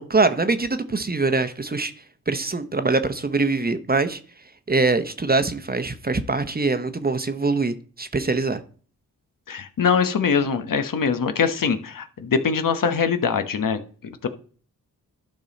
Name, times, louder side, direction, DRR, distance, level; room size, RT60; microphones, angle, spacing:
voice 1, 0.0-1.9 2.3-4.2 4.7-8.6, right 3 dB, 25° right, 1.0 m, -23 dB
voice 2, 9.5-14.3, left 6 dB, 65° left, 1.2 m, -23 dB
12.0 x 5.3 x 4.1 m
cardioid pair, 60°, 36 cm